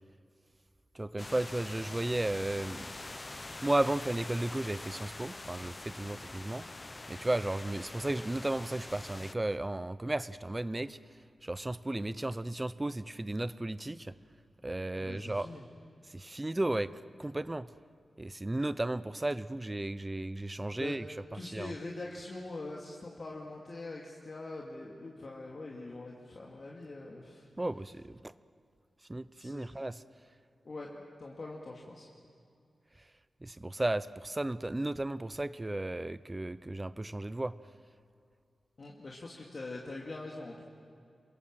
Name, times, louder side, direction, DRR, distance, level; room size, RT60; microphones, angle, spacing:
voice 1, 1.0-2.9 3.6-6.7 7.1-11.0 11.4-14.1 14.6-15.5 16.1-16.9 17.2-17.7 18.2-21.0 21.4-21.7 27.6-28.3 29.1-30.0 33.4-37.6, right 1 dB, 15° right, 16 dB, 0.6 m, -34 dB
sound 1, 1.2-9.3, left 2 dB, 25° left, 0.6 m, -45 dB
voice 2, 14.9-15.6 20.7-20.9 21.3-27.5 29.4-29.7 30.6-32.1 38.8-40.6, left 2 dB, 45° left, -2 dB, 2.4 m, -43 dB
28.0 x 23.0 x 7.5 m, 2.3 s
wide cardioid pair, 140°, 0 cm